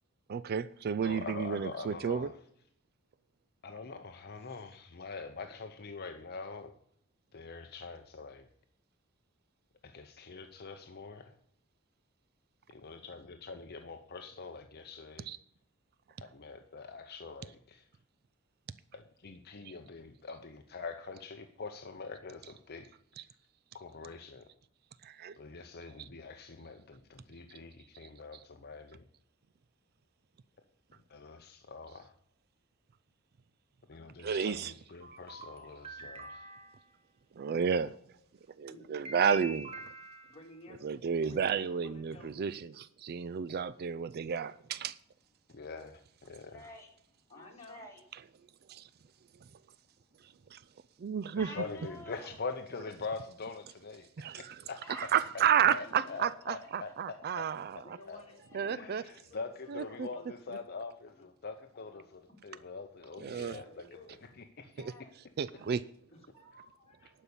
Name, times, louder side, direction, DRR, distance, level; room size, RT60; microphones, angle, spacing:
voice 1, 0.3-2.3 15.3-15.4 19.6-19.7 23.2-23.3 25.0-25.4 26.0-26.1 28.0-28.1 34.2-34.7 37.4-38.0 38.6-39.9 40.8-45.0 48.7-48.9 50.2-50.6 51.0-51.5 54.2-54.6 54.9-58.0 58.5-59.0 59.7-60.1 63.2-63.6 64.8-64.9 65.4-65.8, right 7 dB, 45° right, 0.4 m, -32 dB
voice 2, 1.0-2.3 3.6-6.7 7.3-8.5 9.8-11.3 12.7-15.3 16.2-17.8 18.9-22.9 23.7-24.4 25.3-29.0 31.1-32.1 33.9-36.5 41.3-41.6 45.5-46.6 51.4-54.8 55.7-57.5 57.7-58.2 58.7-64.0 64.4-64.9, left 4 dB, 50° left, 0.8 m, -44 dB
voice 3, 4.4-4.8 38.6-38.9 40.3-41.0 41.3-42.5 47.3-47.8 55.8-56.2 57.8-60.9 61.1-61.3 61.7-62.4 63.3-64.2 66.1-67.1, left 2 dB, 30° left, 2.9 m, -55 dB
sound 1, 35.0-36.9 39.0-40.5, right 3 dB, 30° right, 1.2 m, -46 dB
voice 4, 46.4-48.0 48.4-48.6 48.8-50.6 51.4-52.4 54.8-55.5 55.8-55.9 56.2-56.3 56.6-56.7 57.3-57.4 58.4-58.8 64.8-65.1 65.5-65.7, left 1 dB, 15° left, 2.9 m, -52 dB
11.5 x 5.4 x 8.4 m
head